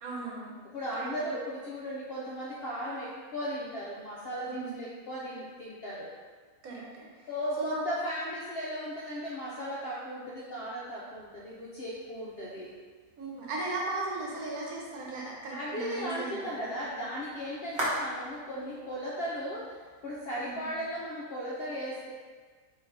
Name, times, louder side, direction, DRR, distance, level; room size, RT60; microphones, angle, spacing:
voice 1, 0.0-0.6 1.0-1.1 4.4-4.8 6.6-7.3 7.6-7.9 13.2-16.7 20.4-20.7, right 2 dB, 75° right, -3 dB, 1.3 m, -37 dB
voice 2, 0.6-6.1 7.3-12.7 15.5-19.8 20.0-22.1, equal, 65° left, -6 dB, 0.6 m, -36 dB
sound 1, 11.1-21.1, right 1 dB, 50° right, 1.1 m, -43 dB
3.7 x 2.9 x 3.2 m, 1.5 s
omnidirectional pair, 1.6 m